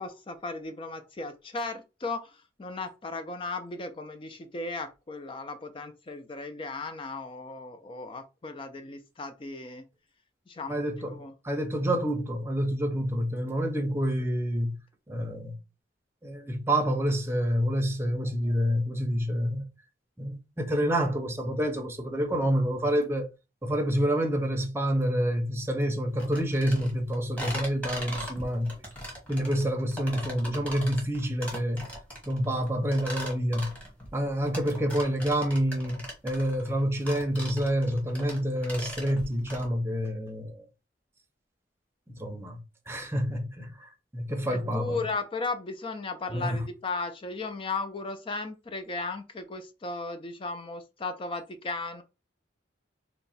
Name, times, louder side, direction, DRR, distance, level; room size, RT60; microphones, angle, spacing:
voice 1, 0.0-9.8 10.5-11.3 44.5-52.0, left 3 dB, 30° left, 0.5 m, -36 dB
voice 2, 10.7-14.8 15.1-15.6 16.2-19.6 20.2-23.3 23.6-28.7 29.3-31.9 32.3-33.7 34.1-40.6 42.1-42.6 42.9-45.0 46.3-46.6, equal, 15° right, 0.6 m, -28 dB
sound 1, 26.2-39.7, equal, 10° left, 1.2 m, -40 dB
2.9 x 2.2 x 4.0 m
head